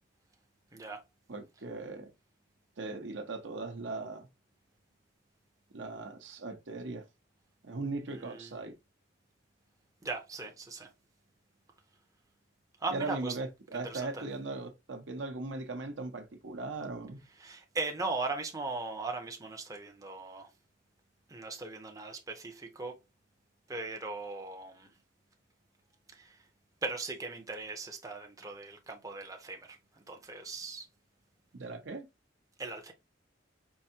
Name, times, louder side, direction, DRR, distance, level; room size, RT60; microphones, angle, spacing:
voice 1, 0.7-1.0 8.1-8.5 10.0-10.9 12.8-13.4 13.7-14.2 17.4-20.5 21.3-23.0 23.7-24.9 26.1-26.4 26.8-29.8 30.1-30.9 32.6-32.9, right 3 dB, 20° right, 0.6 m, -38 dB
voice 2, 1.3-2.1 2.8-4.3 5.7-7.1 7.6-8.8 12.9-17.2 31.5-32.1, right 3 dB, 75° right, 0.8 m, -39 dB
4.6 x 2.6 x 2.7 m
head